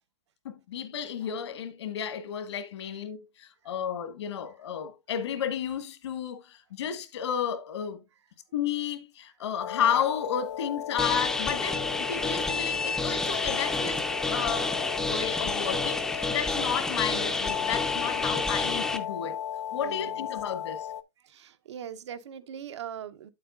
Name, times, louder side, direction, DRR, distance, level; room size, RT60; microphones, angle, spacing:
voice 1, 0.4-8.0 8.5-14.7 15.0-19.4 19.7-20.9, left 8 dB, 70° left, 1.4 m, -32 dB
sound 1, 9.6-21.0, left 10 dB, 85° left, 0.7 m, -36 dB
sound 2, 11.0-19.0, left 2 dB, 5° left, 0.4 m, -29 dB
voice 2, 19.7-20.2 21.2-23.3, right 9 dB, 75° right, 0.8 m, -41 dB
8.8 x 7.8 x 2.4 m
hypercardioid pair, 160°, 15 cm